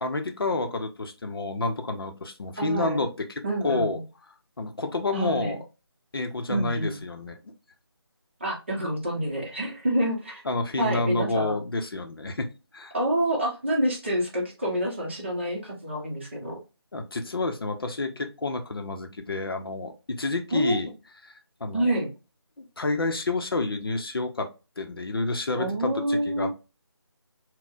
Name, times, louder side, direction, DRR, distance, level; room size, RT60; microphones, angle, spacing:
voice 1, 0.0-3.1 3.6-4.0 4.6-5.6 6.1-7.4 10.5-12.5 12.7-12.9 16.9-20.9 21.6-21.9 22.8-24.5 24.8-26.5, left 2 dB, 60° left, 5 dB, 0.6 m, -29 dB
voice 2, 2.6-3.0 3.4-4.0 5.1-5.6 6.5-7.0 8.4-10.4 10.8-11.6 12.9-16.6 20.5-20.8 21.7-22.1 25.5-26.5, right 1 dB, 25° right, -2 dB, 0.8 m, -27 dB
4.0 x 2.1 x 2.5 m, 0.29 s
figure-of-eight pair, 175°, 14 cm